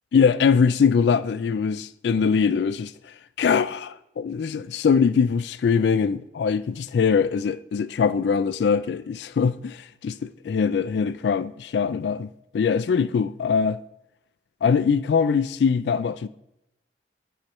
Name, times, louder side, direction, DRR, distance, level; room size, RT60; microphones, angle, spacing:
voice 1, 0.1-2.9 3.4-12.3 12.5-13.8 14.6-16.3, left 6 dB, 70° left, 0.3 m, -22 dB
8.3 x 4.9 x 4.4 m
head